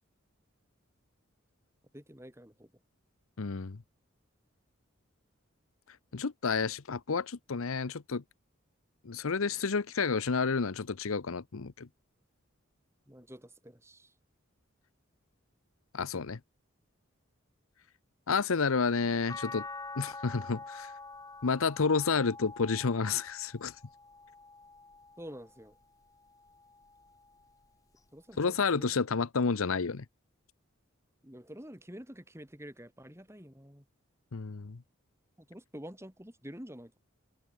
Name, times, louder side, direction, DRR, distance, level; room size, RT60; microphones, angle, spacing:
voice 1, 1.9-2.7 13.1-14.1 25.2-25.8 28.1-28.9 31.2-33.8 35.4-37.0, equal, 10° right, 4.8 m, -48 dB
voice 2, 3.4-3.8 6.1-8.2 9.0-11.9 15.9-16.4 18.3-19.7 20.0-20.9 21.4-23.7 28.4-30.0 34.3-34.8, left 5 dB, 85° left, 0.8 m, -30 dB
sound 1, 19.3-25.6 26.2-27.5 28.9-29.0, left 3 dB, 15° left, 1.5 m, -46 dB
open air
head